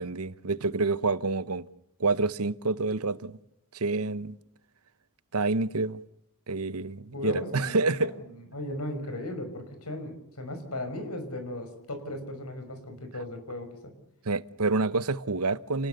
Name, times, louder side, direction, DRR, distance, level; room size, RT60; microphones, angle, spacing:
voice 1, 0.0-1.7 2.0-3.4 3.7-4.4 5.3-6.0 6.5-8.1 14.2-15.9, right 3 dB, 80° right, 1.0 m, -28 dB
voice 2, 7.1-8.1 8.5-13.9, left 1 dB, 85° left, 5.6 m, -36 dB
29.5 x 19.5 x 6.9 m
head